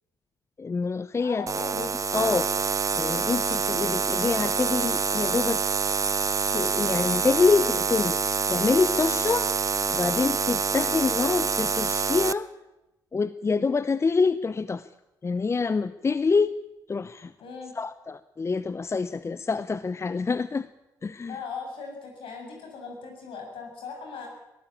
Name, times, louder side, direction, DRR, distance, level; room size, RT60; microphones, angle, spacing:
voice 1, 0.6-1.4 1.8-5.6 6.5-9.5 9.9-12.5 13.1-14.9 15.2-16.6 16.9-17.3 17.8-20.7 21.0-21.4, left 4 dB, 30° left, 15 dB, 0.7 m, -26 dB
voice 2, 1.2-1.8 10.6-10.9 17.4-17.7 21.3-24.3, left 5 dB, 65° left, 2 dB, 7.2 m, -39 dB
sound 1, 1.5-12.3, right 5 dB, 35° right, 0.8 m, -26 dB
22.0 x 15.0 x 8.5 m, 0.96 s
hypercardioid pair, 50°, 10 cm